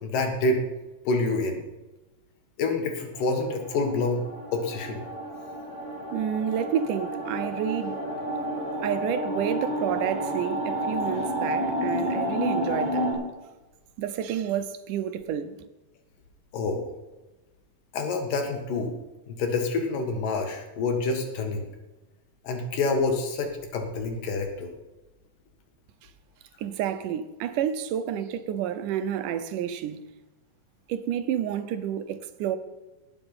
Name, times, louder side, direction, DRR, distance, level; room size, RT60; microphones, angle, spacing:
voice 1, 0.0-0.6 1.1-1.6 2.6-4.2 4.5-5.0 16.5-16.8 17.9-18.9 19.3-21.7 22.4-24.7, left 3 dB, 80° left, 3.3 m, -27 dB
sound 1, 3.1-13.1, equal, 35° left, 5.3 m, -30 dB
voice 2, 6.1-8.0 8.8-13.1 14.0-15.6 26.6-30.1 30.9-32.6, right 9 dB, 75° right, 2.3 m, -29 dB
19.5 x 7.1 x 5.5 m
omnidirectional pair, 3.8 m